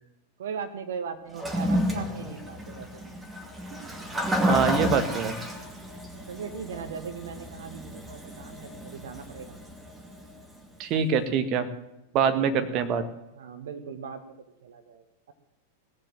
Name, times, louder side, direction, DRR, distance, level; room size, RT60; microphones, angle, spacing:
voice 1, 0.4-3.2 6.3-9.5 12.2-12.8 13.3-14.3 14.6-15.3, right 6 dB, 65° right, 8 dB, 1.7 m, -39 dB
Toilet flush, 1.3-10.6, equal, 15° right, 2.3 m, -31 dB
voice 2, 4.5-5.4 10.8-11.7 12.1-13.0, right 6 dB, 40° right, 9 dB, 1.7 m, -24 dB
18.0 x 7.5 x 7.6 m, 0.94 s
figure-of-eight pair, 95°, 0 cm